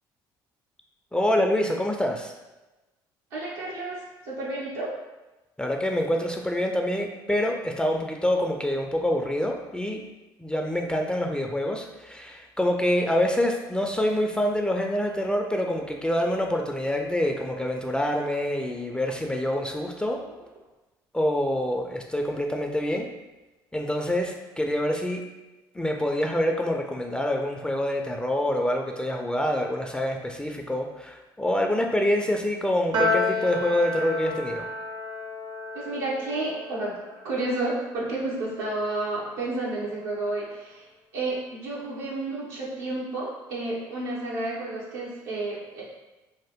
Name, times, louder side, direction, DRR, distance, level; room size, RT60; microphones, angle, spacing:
voice 1, 1.1-2.3 5.6-10.0 10.4-20.2 21.1-23.1 23.7-25.2 25.8-34.6, left 1 dB, 10° left, 2 dB, 0.4 m, -26 dB
voice 2, 3.3-4.9 20.1-20.2 35.7-37.0 37.2-45.8, right 2 dB, 90° right, -6 dB, 0.8 m, -31 dB
Piano, 32.9-39.4, left 2 dB, 50° right, 0.5 m, -32 dB
2.7 x 2.1 x 3.5 m, 1.1 s
supercardioid pair, 70°, 10 cm